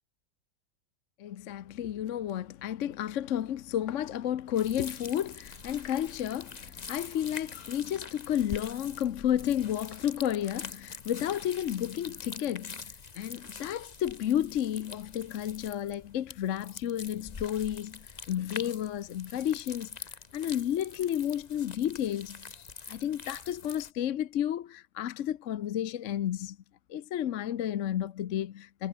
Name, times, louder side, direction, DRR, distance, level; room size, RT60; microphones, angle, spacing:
voice 1, 1.2-12.8 13.2-19.9 20.3-26.6 26.9-28.9, left 10 dB, 60° left, 0.9 m, -32 dB
sound 1, 4.5-23.9, left 5 dB, 30° left, 0.9 m, -45 dB
omnidirectional pair, 1.9 m